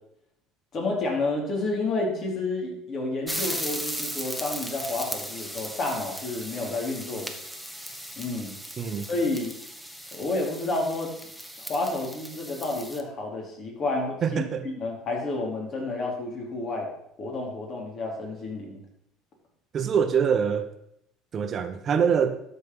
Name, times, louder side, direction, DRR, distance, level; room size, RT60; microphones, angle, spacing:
voice 1, 0.7-7.4 8.2-8.5 9.1-9.5 10.1-11.1 11.6-16.9 17.2-18.8, left 2 dB, 45° left, -1 dB, 3.8 m, -30 dB
sound 1, 3.3-13.0, equal, ahead, 1.3 m, -37 dB
voice 2, 8.8-9.1 14.2-14.7 19.7-20.7 21.3-22.4, right 7 dB, 45° right, 9 dB, 1.1 m, -24 dB
12.5 x 5.4 x 5.5 m, 0.75 s
supercardioid pair, 90°, 0 cm